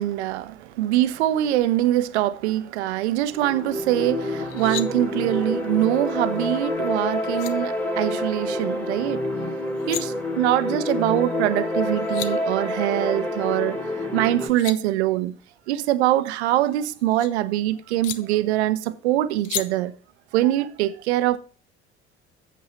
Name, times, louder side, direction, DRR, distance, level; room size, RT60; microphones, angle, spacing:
voice 1, 0.0-9.4 9.9-13.8 14.1-15.4 15.7-19.9 20.3-21.4, right 14 dB, 70° right, 0.7 m, -23 dB
sound 1, 3.3-14.5, left 1 dB, 5° left, 2.0 m, -28 dB
sound 2, 4.4-4.9 6.9-7.0 7.3-7.5 9.6-10.0 11.7-11.8 12.0-12.3 14.2-14.8 16.3-17.3 18.0-18.2 19.4-19.6, left 12 dB, 60° left, 0.8 m, -33 dB
8.3 x 7.6 x 4.3 m
figure-of-eight pair, 50°, 35 cm